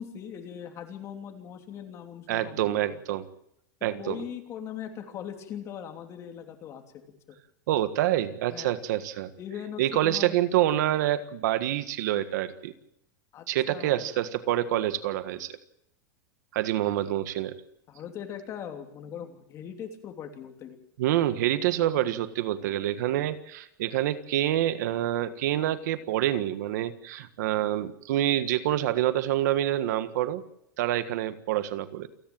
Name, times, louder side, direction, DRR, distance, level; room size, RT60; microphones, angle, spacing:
voice 1, 0.0-3.0 3.8-6.8 8.5-8.8 9.4-10.3 13.3-14.1 17.9-20.8, left 9 dB, 30° left, 4 dB, 3.0 m, -40 dB
voice 2, 2.3-3.2 3.8-4.2 7.7-9.3 9.8-12.7 13.5-15.6 16.5-17.5 21.0-30.4 30.8-32.1, right 13 dB, 70° right, 11 dB, 1.6 m, -27 dB
28.5 x 10.5 x 9.0 m, 0.74 s
supercardioid pair, 155°, 10 cm